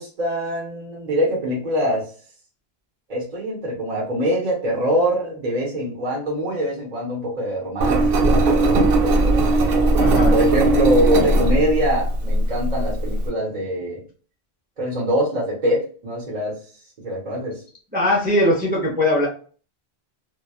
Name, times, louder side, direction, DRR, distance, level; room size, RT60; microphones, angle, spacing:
voice 1, 0.0-2.1 3.1-9.6 10.3-14.0 14.8-16.6 17.0-17.6, equal, 45° right, -2 dB, 0.9 m, -24 dB
Engine, 7.8-13.3, right 2 dB, 70° right, 0.7 m, -18 dB
voice 2, 10.0-10.3 17.9-19.3, left 1 dB, 10° right, -3 dB, 0.5 m, -20 dB
2.9 x 2.2 x 2.2 m, 0.40 s
omnidirectional pair, 1.1 m